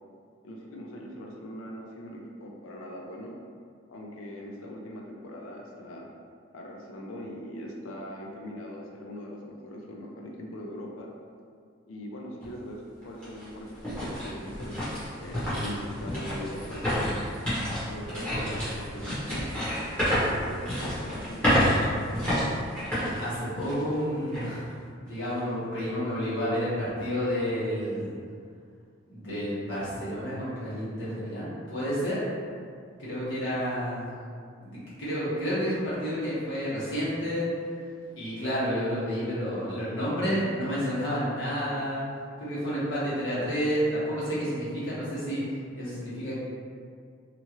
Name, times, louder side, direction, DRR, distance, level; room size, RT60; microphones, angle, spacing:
voice 1, 0.4-3.3 3.9-6.1 6.5-11.1 11.9-14.8 15.2-16.8 17.9-19.5 20.2-22.1, equal, 90° left, 0 dB, 0.5 m, -41 dB
sound 1, 12.4-12.5 13.0-23.9 24.3-24.5 25.0-25.4, equal, 5° left, 1.0 m, -29 dB
voice 2, 23.2-24.7 25.0-28.2 29.1-32.3 33.0-34.1 34.6-37.5 38.1-42.0 42.4-45.4 45.7-46.4, equal, 65° left, -10 dB, 1.2 m, -30 dB
2.8 x 2.4 x 2.9 m, 2.2 s
head